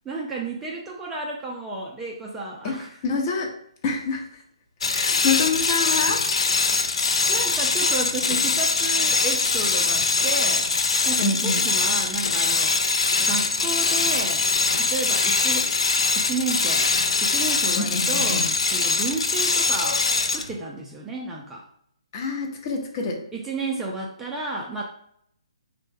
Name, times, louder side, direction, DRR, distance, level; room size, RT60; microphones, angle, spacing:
voice 1, 0.1-3.0 7.3-10.7 11.1-12.8 13.2-14.5 14.7-15.7 16.1-16.9 17.2-20.0 20.3-21.6 23.3-24.8, right 3 dB, 10° right, -2 dB, 0.3 m, -32 dB
voice 2, 3.0-3.5 3.8-4.2 4.9-6.2 11.2-11.7 17.8-18.5 22.1-23.2, left 4 dB, 35° left, 1 dB, 0.6 m, -26 dB
shutter door's chain, 4.8-20.5, left 4 dB, 65° left, 0.4 m, -22 dB
3.2 x 2.1 x 3.3 m, 0.67 s
figure-of-eight pair, 140°, 3 cm